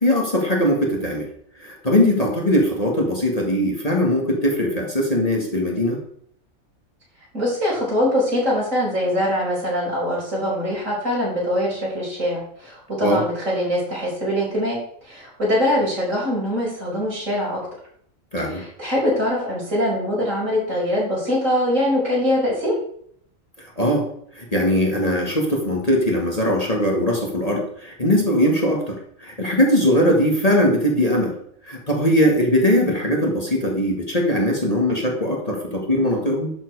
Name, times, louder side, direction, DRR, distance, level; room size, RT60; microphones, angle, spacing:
voice 1, 0.0-1.3 1.6-6.0 13.0-13.2 18.3-18.6 23.6-24.0 24.3-31.3 31.6-36.5, equal, 25° left, 0 dB, 1.9 m, -20 dB
voice 2, 7.3-17.6 18.4-22.7, equal, 65° right, -5 dB, 6.1 m, -23 dB
11.5 x 7.6 x 4.8 m, 0.65 s
omnidirectional pair, 1.4 m